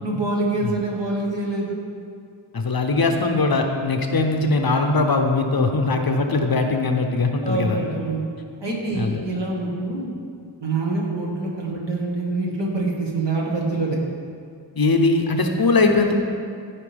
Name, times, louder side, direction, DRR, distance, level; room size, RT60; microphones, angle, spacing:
voice 1, 0.0-1.8 7.4-8.2 8.6-10.1 10.6-14.0, right 2 dB, 60° right, -3 dB, 1.6 m, -25 dB
voice 2, 2.5-7.8 8.9-9.2 14.8-16.1, left 3 dB, 50° left, 4 dB, 0.7 m, -20 dB
13.0 x 4.6 x 3.4 m, 2.3 s
wide cardioid pair, 60°, 49 cm